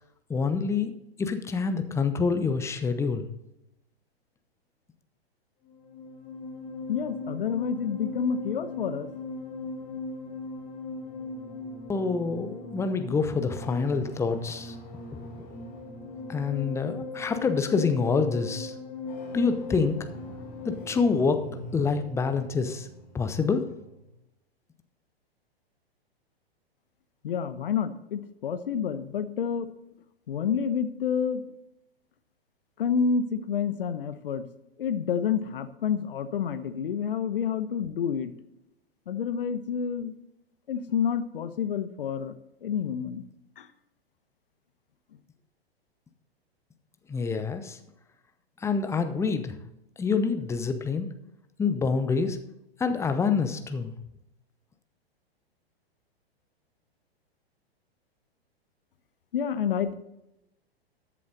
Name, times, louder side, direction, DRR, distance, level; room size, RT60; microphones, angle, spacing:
voice 1, 0.3-0.9 1.2-3.3 11.9-14.7 15.1-15.5 16.3-18.7 19.3-20.0 20.6-21.4 21.7-22.9 23.1-23.6 47.1-47.8 48.6-49.5 50.0-51.1 51.6-52.4 52.8-54.0, left 5 dB, 10° left, 9 dB, 0.8 m, -26 dB
sound 1, 5.7-24.1, left 3 dB, 25° left, 2.1 m, -39 dB
voice 2, 6.9-9.1 27.2-29.7 30.3-31.4 32.8-34.5 34.8-38.3 39.1-40.1 40.7-42.3 42.6-43.2 43.6-43.7 59.3-59.9, left 7 dB, 60° left, 11 dB, 1.1 m, -29 dB
13.5 x 7.5 x 3.9 m, 0.88 s
figure-of-eight pair, 105°, 31 cm